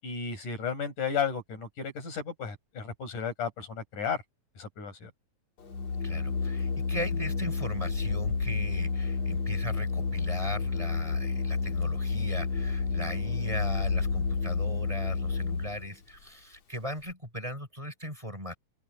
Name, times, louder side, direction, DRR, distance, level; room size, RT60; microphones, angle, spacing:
voice 1, 0.0-4.2 4.6-5.1, left 6 dB, 85° left, 8.9 m, -33 dB
Organ, 5.6-15.9, left 4 dB, 60° left, 3.9 m, -30 dB
voice 2, 6.0-18.5, equal, 10° right, 5.4 m, -38 dB
open air
omnidirectional pair, 3.5 m